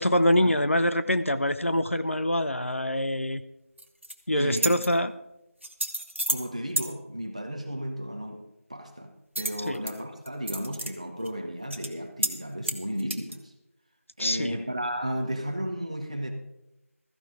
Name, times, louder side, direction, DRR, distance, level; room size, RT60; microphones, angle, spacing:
voice 1, 0.0-3.4 4.3-5.1 9.7-9.8 14.2-14.6, left 1 dB, 60° left, 0.7 m, -25 dB
sound 1, 3.8-4.1 4.5-4.9 5.6-6.5 6.8-6.9 9.4-9.9 10.3-10.9 11.3-11.4 11.7-11.9 12.2-12.4 12.6-13.4, right 1 dB, 50° right, 1.3 m, -30 dB
voice 2, 4.3-4.7 6.3-8.4 8.7-9.1 9.4-13.5 14.2-16.3, equal, 25° right, 1.1 m, -34 dB
15.0 x 13.5 x 3.7 m
figure-of-eight pair, 175°, 8 cm